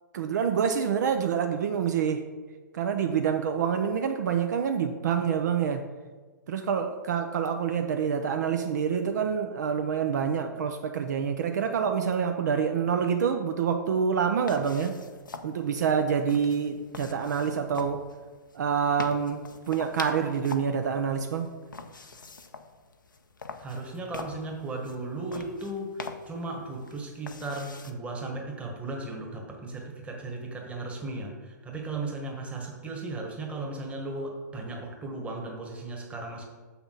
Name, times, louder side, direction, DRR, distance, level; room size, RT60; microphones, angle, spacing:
voice 1, 0.1-2.2 2.7-5.9 6.5-15.0 15.4-18.0 18.5-19.4 19.7-21.5, right 7 dB, 60° right, 6 dB, 0.5 m, -27 dB
sound 1, 14.4-27.9, left 4 dB, 85° left, 0.6 m, -44 dB
voice 2, 23.6-36.4, right 2 dB, 10° right, 1 dB, 1.3 m, -36 dB
6.7 x 5.9 x 3.9 m, 1.4 s
figure-of-eight pair, 115°, 10 cm